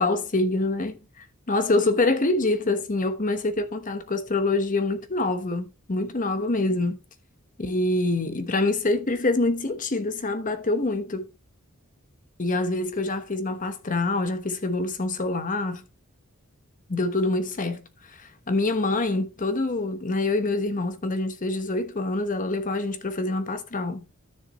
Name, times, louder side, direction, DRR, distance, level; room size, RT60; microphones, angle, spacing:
voice 1, 0.0-7.0 7.6-11.3 12.4-15.8 16.9-24.1, left 2 dB, 40° left, 1.2 m, -26 dB
12.5 x 7.0 x 3.0 m
head